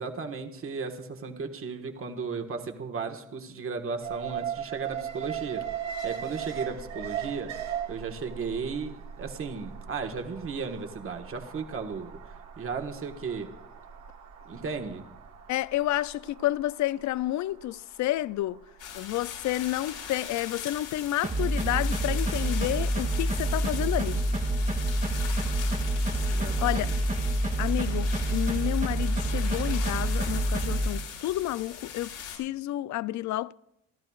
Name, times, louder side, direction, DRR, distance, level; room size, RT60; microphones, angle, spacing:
voice 1, 0.0-5.7 6.0-7.6 7.9-13.5 14.5-15.1 26.3-26.9, right 5 dB, 45° right, 1.5 m, -35 dB
Alarm, 4.0-20.1 20.4-20.5, right 9 dB, 65° right, 1.4 m, -39 dB
voice 2, 15.5-18.6 18.9-24.2 26.3-27.0 27.6-33.5, left 15 dB, 70° left, 0.4 m, -30 dB
sound 1, 18.8-32.4, left 7 dB, 85° left, 5.8 m, -40 dB
sound 2, 21.2-30.9, right 1 dB, 25° right, 1.5 m, -27 dB
29.0 x 12.0 x 2.4 m
cardioid pair, 90°, 30 cm